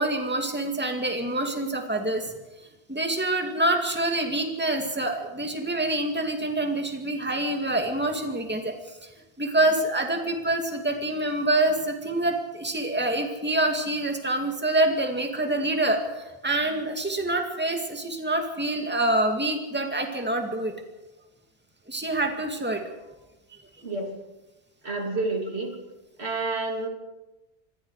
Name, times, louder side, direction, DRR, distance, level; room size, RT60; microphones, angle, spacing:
voice 1, 0.0-2.3 2.9-9.0 9.4-20.8 21.9-22.8, right 1 dB, 10° right, 3 dB, 2.3 m, -26 dB
voice 2, 24.8-25.8 26.2-26.9, right 3 dB, 75° right, 2 dB, 3.6 m, -29 dB
27.0 x 21.0 x 4.9 m, 1.0 s
omnidirectional pair, 1.1 m